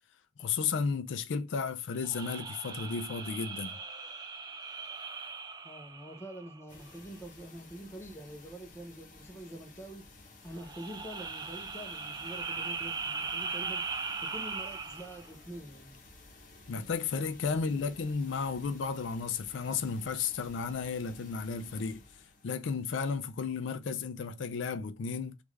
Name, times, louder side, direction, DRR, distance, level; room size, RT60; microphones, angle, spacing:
voice 1, 0.4-3.8 16.7-22.0 22.4-25.4, left 5 dB, 80° left, 0.4 m, -33 dB
sound 1, 2.0-6.7 10.6-15.3, right 4 dB, 20° right, 0.4 m, -39 dB
voice 2, 5.6-10.0 10.4-16.0 17.4-17.9, right 1 dB, 15° left, 0.7 m, -46 dB
sound 2, 6.7-23.4, left 2 dB, 45° left, 0.9 m, -55 dB
3.4 x 2.4 x 3.1 m
head